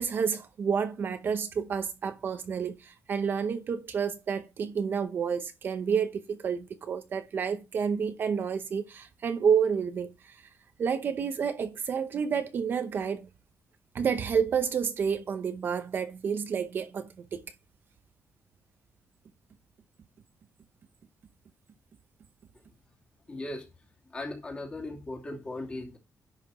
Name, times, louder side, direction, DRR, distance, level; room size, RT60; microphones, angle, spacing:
voice 1, 0.0-10.5 10.8-13.3 13.9-17.4, right 6 dB, 45° right, 0.8 m, -29 dB
voice 2, 23.3-23.7 24.1-26.0, left 2 dB, 20° left, 2.6 m, -38 dB
10.5 x 5.8 x 4.2 m
wide cardioid pair, 175°, 5 cm